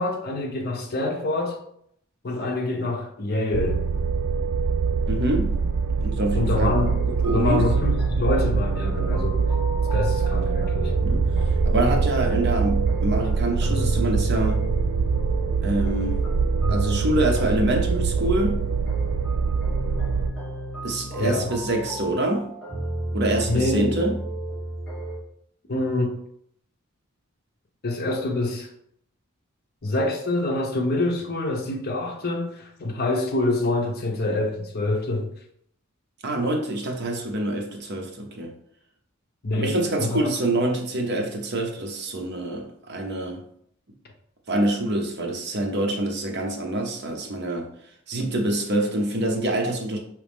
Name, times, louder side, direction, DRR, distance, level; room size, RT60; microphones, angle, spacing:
voice 1, 0.0-1.6 2.2-3.8 6.3-6.9 7.3-9.4 9.9-10.9 21.2-21.6 23.5-24.0 25.7-26.2 27.8-28.7 29.8-35.3 39.4-40.3, left 2 dB, 45° left, 0.7 m, -26 dB
sound 1, 3.5-20.3, right 5 dB, 80° right, 0.3 m, -24 dB
voice 2, 5.1-5.6 6.0-6.7 7.2-7.7 11.0-14.6 15.6-16.2 16.7-18.7 20.8-22.5 23.1-24.2 36.2-38.5 39.5-43.4 44.5-47.7 48.1-50.0, right 1 dB, 50° right, 0.8 m, -26 dB
sound 2, 6.8-25.2, right 1 dB, 5° left, 1.6 m, -33 dB
4.9 x 3.1 x 3.5 m
head